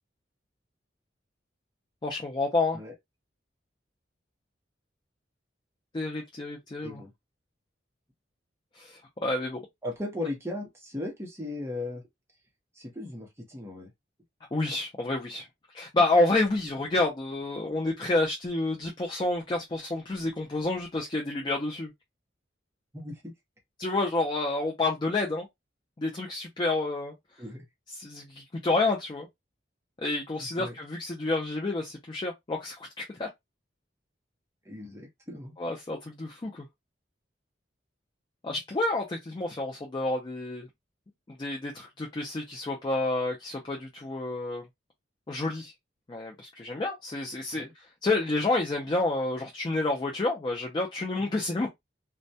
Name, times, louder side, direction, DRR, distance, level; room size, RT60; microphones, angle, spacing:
voice 1, 2.0-2.8 5.9-7.0 8.8-9.6 14.5-15.5 15.7-21.9 23.8-25.5 26.0-27.1 28.0-29.3 30.0-33.3 35.6-36.6 38.4-40.7 41.3-44.6 45.3-45.7 46.1-51.7, left 2 dB, 25° left, 0.4 m, -29 dB
voice 2, 9.8-12.0 12.7-13.9 22.9-23.3 27.4-27.7 30.4-30.8 34.6-35.5 47.6-47.7, left 2 dB, 15° right, 0.7 m, -37 dB
2.2 x 2.1 x 2.6 m
head